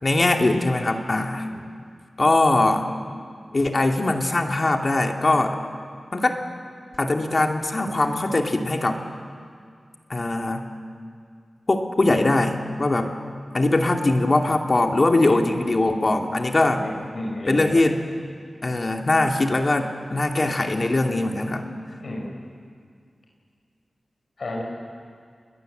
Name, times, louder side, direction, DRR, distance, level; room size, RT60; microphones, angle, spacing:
voice 1, 0.0-1.5 2.2-2.9 3.5-5.6 6.1-6.4 7.0-9.0 10.1-10.6 11.7-13.1 13.5-16.8 17.5-18.0 18.6-21.7, left 2 dB, 45° left, 4 dB, 2.3 m, -21 dB
voice 2, 16.6-17.8 22.0-22.3 24.4-24.6, left 1 dB, 70° left, -1 dB, 4.8 m, -32 dB
30.0 x 21.0 x 7.8 m, 2.1 s
wide cardioid pair, 65°, 0 cm